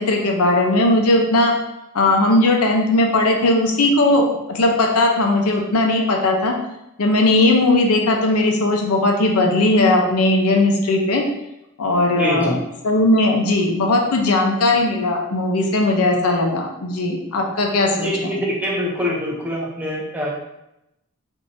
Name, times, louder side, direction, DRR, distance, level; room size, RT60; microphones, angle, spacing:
voice 1, 0.0-1.6 1.9-6.6 7.0-11.3 11.8-18.3, left 2 dB, 90° left, 2 dB, 0.6 m, -18 dB
voice 2, 12.1-12.6 18.0-20.3, equal, 5° right, -2 dB, 0.6 m, -24 dB
4.7 x 2.7 x 2.6 m, 0.88 s
head